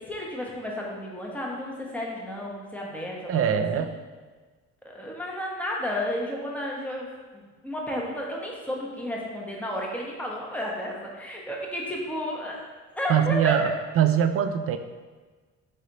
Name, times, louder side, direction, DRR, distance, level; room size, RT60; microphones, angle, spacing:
voice 1, 0.0-3.4 3.7-3.8 4.8-7.1 7.3-12.6 13.0-13.5, left 1 dB, 5° left, -3 dB, 1.0 m, -32 dB
voice 2, 3.3-4.0 13.1-13.7 14.0-14.8, right 9 dB, 50° right, 9 dB, 0.4 m, -22 dB
4.1 x 3.2 x 3.8 m, 1.4 s
cardioid pair, 90°, 30 cm